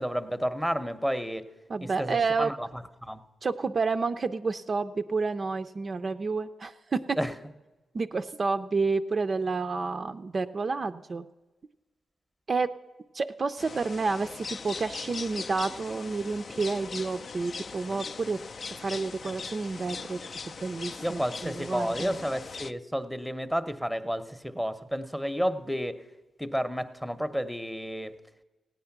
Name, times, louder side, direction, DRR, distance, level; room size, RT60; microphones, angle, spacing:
voice 1, 0.0-1.4 1.8-2.7 3.0-3.2 7.2-7.3 21.0-26.0 26.4-28.1, equal, ahead, 11 dB, 0.7 m, -31 dB
voice 2, 1.7-2.5 3.4-7.2 7.9-11.2 12.5-12.7 13.1-18.4 18.8-20.2 20.6-22.1, right 4 dB, 40° right, 8 dB, 0.4 m, -30 dB
sound 1, 13.6-22.7, left 4 dB, 50° left, 0.4 m, -40 dB
16.5 x 9.3 x 5.9 m, 1.2 s
cardioid pair, 85°, 0 cm